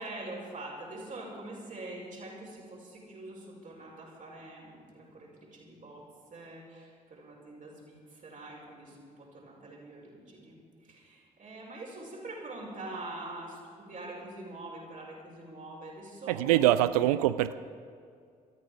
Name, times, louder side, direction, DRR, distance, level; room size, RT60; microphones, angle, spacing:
voice 1, 0.0-16.9, right 2 dB, 40° right, -2 dB, 5.2 m, -44 dB
voice 2, 16.3-17.5, right 14 dB, 70° right, 14 dB, 0.4 m, -24 dB
18.0 x 13.5 x 5.0 m, 2.2 s
figure-of-eight pair, 40°, 20 cm